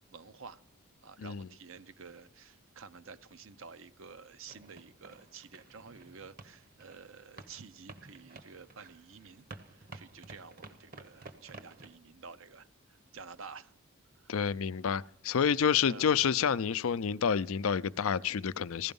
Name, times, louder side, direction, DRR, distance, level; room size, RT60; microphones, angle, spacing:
voice 1, 0.1-0.6 1.0-13.7 14.1-14.3 15.8-16.1, right 5 dB, 70° right, 0.7 m, -51 dB
sound 1, 4.5-12.0, right 3 dB, 40° right, 1.0 m, -52 dB
voice 2, 14.3-18.9, left 7 dB, 80° left, 0.5 m, -29 dB
16.0 x 12.0 x 5.4 m
head